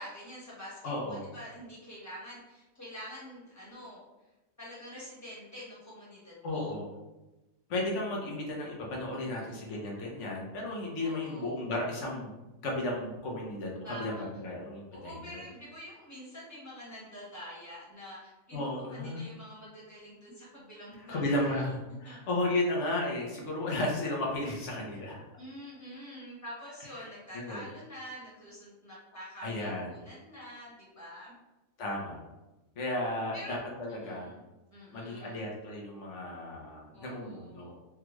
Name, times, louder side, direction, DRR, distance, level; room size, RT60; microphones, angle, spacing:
voice 1, 0.0-4.0 4.6-6.8 9.1-9.6 11.0-11.6 13.8-14.3 14.9-21.6 22.0-22.2 25.4-31.4 33.3-33.5 33.9-34.4 34.7-35.4 36.9-37.8, equal, 15° left, -8 dB, 1.2 m, -46 dB
voice 2, 0.8-1.3 6.4-6.9 7.7-12.4 12.6-15.4 18.5-19.2 21.1-25.2 27.0-27.6 29.4-29.9 31.8-32.2 32.8-34.3 34.9-37.8, left 1 dB, 65° left, -2 dB, 1.1 m, -34 dB
3.4 x 2.4 x 3.0 m, 1.0 s
omnidirectional pair, 1.4 m